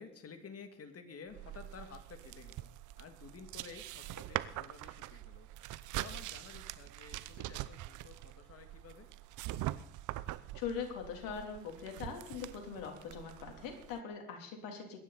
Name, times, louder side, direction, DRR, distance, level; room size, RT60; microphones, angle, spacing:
voice 1, 0.0-2.7 3.0-9.1, left 5 dB, 40° left, 7 dB, 2.5 m, -52 dB
sound 1, 1.3-14.0, right 15 dB, 55° right, 0.8 m, -44 dB
voice 2, 10.5-15.0, left 6 dB, 65° left, 3 dB, 3.4 m, -42 dB
22.5 x 10.5 x 4.2 m, 0.65 s
hypercardioid pair, 65°, 36 cm